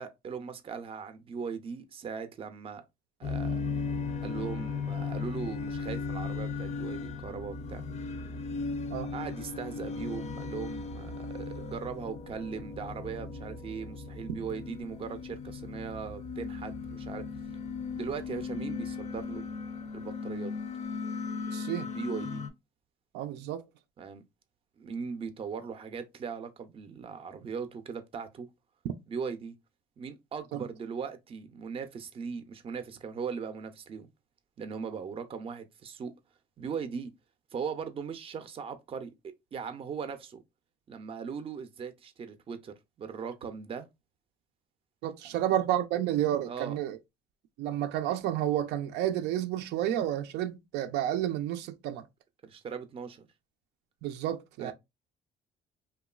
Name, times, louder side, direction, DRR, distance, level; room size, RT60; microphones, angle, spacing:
voice 1, 0.0-2.8 3.2-3.6 4.2-7.8 9.1-17.3 17.9-19.4 19.9-20.5 21.8-22.5 24.0-24.2 24.8-28.5 29.1-29.6 30.0-34.1 34.6-36.1 36.6-37.1 37.5-40.4 40.9-43.9 45.2-45.4 46.5-46.8 52.4-53.3 54.6-54.7, right 6 dB, 35° right, 0.5 m, -39 dB
sound 1, 3.2-22.5, left 4 dB, 45° left, 0.4 m, -37 dB
voice 2, 21.5-21.9 23.1-23.6 30.5-30.6 45.0-47.0 47.6-52.1 54.0-54.7, right 12 dB, 85° right, 0.4 m, -30 dB
3.0 x 2.3 x 2.3 m
cardioid pair, 110°, 17 cm